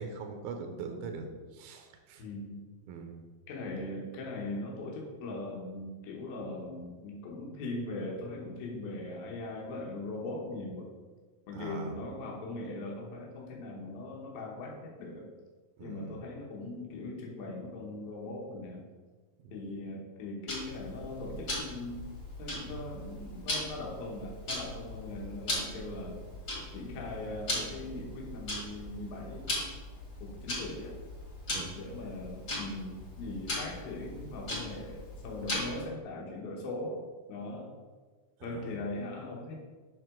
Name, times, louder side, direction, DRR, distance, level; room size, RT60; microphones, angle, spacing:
voice 1, 0.0-2.2 2.9-3.2 11.5-12.0 15.8-16.2 19.4-19.5 31.5-31.8 38.4-38.7, right 4 dB, 75° right, 4 dB, 1.9 m, -42 dB
voice 2, 2.2-2.6 3.5-10.9 11.5-15.3 15.8-18.8 19.5-22.0 22.4-26.1 26.7-29.5 30.2-31.0 31.8-37.0 37.3-37.7 38.4-39.6, left 2 dB, 80° left, -2 dB, 2.9 m, -40 dB
Tick-tock, 20.5-35.9, left 1 dB, 35° left, 2.9 m, -39 dB
7.8 x 5.9 x 3.6 m, 1.4 s
omnidirectional pair, 4.2 m